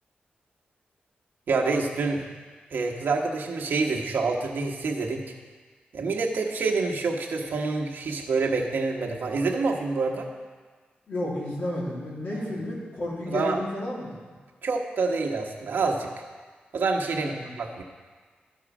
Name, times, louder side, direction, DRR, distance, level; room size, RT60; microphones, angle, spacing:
voice 1, 1.5-2.3 2.7-5.2 5.9-10.3 12.3-12.4 13.3-13.6 14.6-16.2 16.7-17.8, right 4 dB, 75° right, 0 dB, 1.2 m, -27 dB
voice 2, 11.1-14.2 17.1-17.5, left 1 dB, 60° left, -6 dB, 3.2 m, -32 dB
14.0 x 4.8 x 6.1 m, 1.5 s
wide cardioid pair, 95°, 3 cm